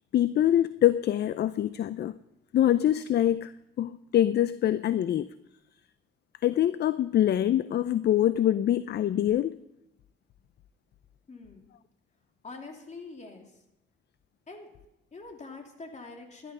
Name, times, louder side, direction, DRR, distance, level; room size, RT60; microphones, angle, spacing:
voice 1, 0.1-2.1 2.5-3.5 3.8-5.3 6.4-9.5, left 11 dB, 55° left, 15 dB, 0.5 m, -24 dB
voice 2, 11.3-11.7 12.4-13.4 14.5-14.7 15.1-16.5, left 3 dB, 35° left, 3 dB, 3.0 m, -44 dB
14.0 x 11.0 x 5.5 m, 0.90 s
cardioid pair, 90°, 20 cm